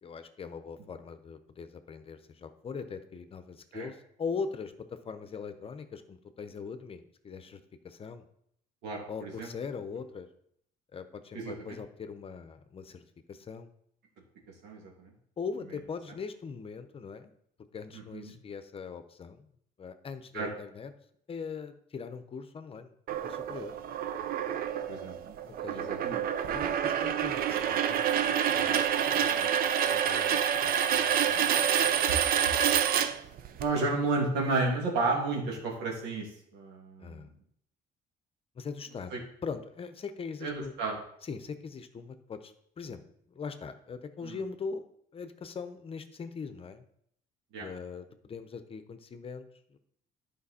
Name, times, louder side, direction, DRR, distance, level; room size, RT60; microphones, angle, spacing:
voice 1, 0.0-8.2 9.1-10.3 10.9-13.7 15.4-17.3 17.7-19.5 19.8-20.9 21.3-22.9 23.2-23.8 25.5-25.9 26.5-32.1 32.4-32.8 37.0-37.3 38.5-40.7 41.2-43.0 43.3-44.9 45.1-46.8 47.6-49.8, left 5 dB, 35° left, 10 dB, 0.8 m, -41 dB
voice 2, 8.8-9.5 11.3-11.8 14.6-15.1 17.9-18.3 20.3-20.5 24.9-25.2 25.7-26.2 33.6-37.3 39.1-39.2 40.4-41.0 44.2-44.4 47.5-47.7, right 3 dB, 90° right, -1 dB, 2.6 m, -32 dB
sound 1, 23.1-33.6, right 9 dB, 60° right, 0.7 m, -28 dB
10.5 x 5.2 x 4.2 m, 0.70 s
cardioid pair, 110°, 17 cm